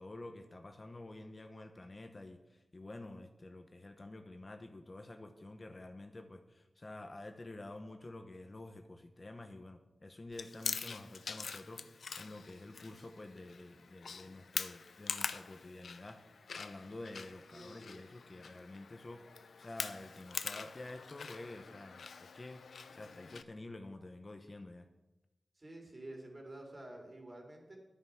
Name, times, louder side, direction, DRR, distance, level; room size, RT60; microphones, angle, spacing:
voice 1, 0.0-19.2 19.6-22.6 22.9-24.9, left 2 dB, 35° left, 6 dB, 1.0 m, -49 dB
Chewing mastication, 10.3-23.4, left 5 dB, 90° left, 0.6 m, -44 dB
voice 2, 17.5-18.0 25.5-27.8, right 1 dB, 35° right, 1 dB, 3.4 m, -50 dB
11.5 x 9.3 x 5.8 m, 1.0 s
wide cardioid pair, 90°, 0 cm